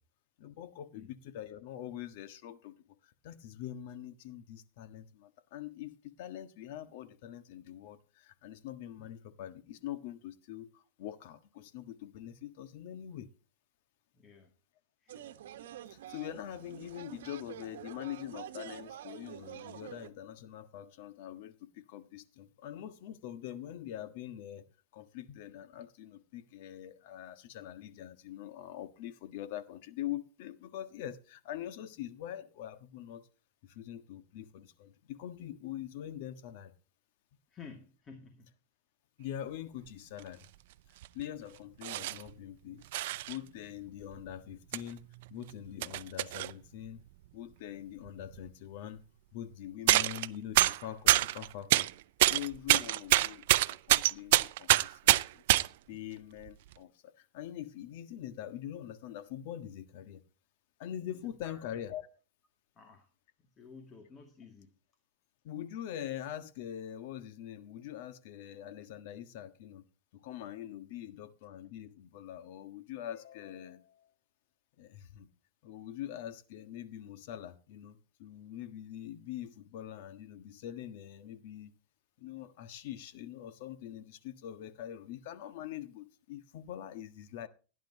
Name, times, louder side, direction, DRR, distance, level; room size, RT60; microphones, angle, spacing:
voice 1, 0.4-2.7 3.0-13.3 15.9-24.6 24.9-33.3 33.6-36.7 39.2-40.5 41.1-42.8 43.3-47.0 47.3-49.0 49.3-51.9 52.3-55.4 55.9-60.2 60.8-62.1 65.4-69.8 70.1-74.1 74.8-75.3 75.6-81.7 82.2-87.5, left 11 dB, 60° left, 1.5 m, -44 dB
voice 2, 14.1-14.5 15.0-15.3 37.5-38.5 61.4-61.7 62.8-63.1 63.6-64.7, left 5 dB, 25° left, 2.2 m, -52 dB
sound 1, 15.1-20.1, right 11 dB, 80° right, 1.2 m, -47 dB
sound 2, 40.2-40.3 41.0-41.2 41.8-42.3 42.9-43.4 44.1-44.2 44.7-44.8 45.2-46.5 48.1-48.2 48.3-48.5 49.9-50.3 50.5-51.9 52.2-55.7 56.5-56.7, right 17 dB, 65° right, 0.5 m, -26 dB
17.5 x 10.5 x 2.9 m
supercardioid pair, 145°, 0 cm